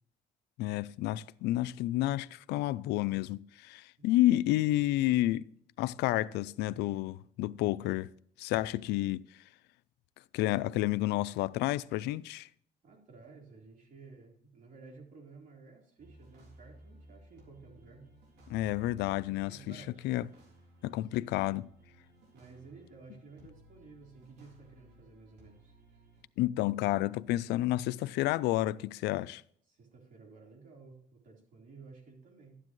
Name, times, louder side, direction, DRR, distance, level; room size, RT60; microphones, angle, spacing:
voice 1, 0.6-5.4 5.8-8.1 8.4-9.2 10.3-12.5 18.5-19.8 20.0-20.3 20.8-21.7 26.4-29.4, left 16 dB, 85° left, 0.4 m, -30 dB
voice 2, 12.8-18.0 19.0-20.3 20.8-21.1 22.3-25.7 29.7-32.6, right 4 dB, 50° right, 4.0 m, -54 dB
sound 1, 16.0-26.2, equal, 80° right, 3.5 m, -58 dB
12.5 x 9.8 x 3.1 m
cardioid pair, 110°, 17 cm